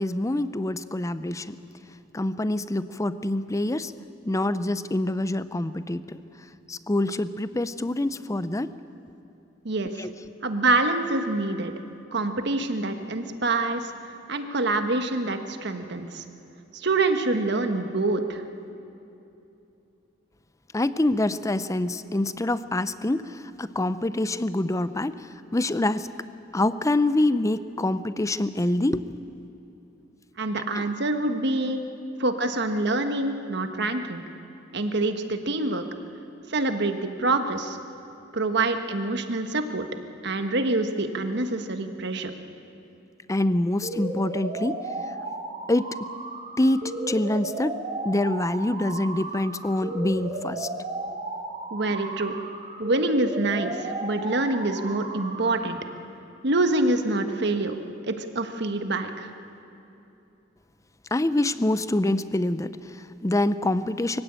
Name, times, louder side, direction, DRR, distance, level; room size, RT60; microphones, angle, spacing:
voice 1, 0.0-1.6 2.1-3.9 4.2-6.2 6.7-8.7 10.0-10.1 20.7-26.1 26.5-29.1 30.7-30.8 31.7-32.0 43.3-44.9 45.7-46.0 46.6-47.8 48.0-50.7 61.1-64.2, left 1 dB, 15° left, 14 dB, 0.6 m, -26 dB
voice 2, 10.4-11.7 12.1-13.9 14.3-16.2 16.7-18.4 30.4-31.8 32.2-34.2 34.7-35.8 36.5-37.8 38.3-39.9 40.2-42.3 51.7-52.4 52.8-55.8 56.4-57.8 58.1-59.3, right 2 dB, 65° right, 7 dB, 1.4 m, -26 dB
sound 1, 43.8-55.8, right 2 dB, 35° right, 2.9 m, -34 dB
23.0 x 16.0 x 8.9 m, 2.8 s
head